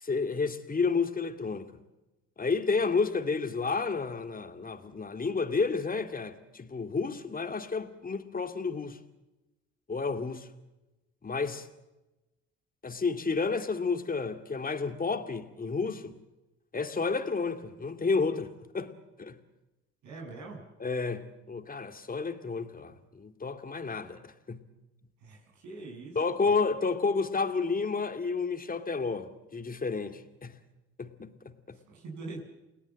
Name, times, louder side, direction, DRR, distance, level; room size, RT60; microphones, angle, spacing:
voice 1, 0.0-1.7 2.4-9.0 9.9-10.5 11.2-11.7 12.8-16.1 16.7-18.5 18.7-18.9 19.2-19.4 20.8-24.6 26.2-30.5 31.0-31.8, left 4 dB, 25° left, 2.4 m, -31 dB
voice 2, 20.0-20.6 25.2-26.2 31.9-32.4, right 3 dB, 65° right, 7.6 m, -43 dB
29.5 x 18.5 x 7.5 m
hypercardioid pair, 65°, 32 cm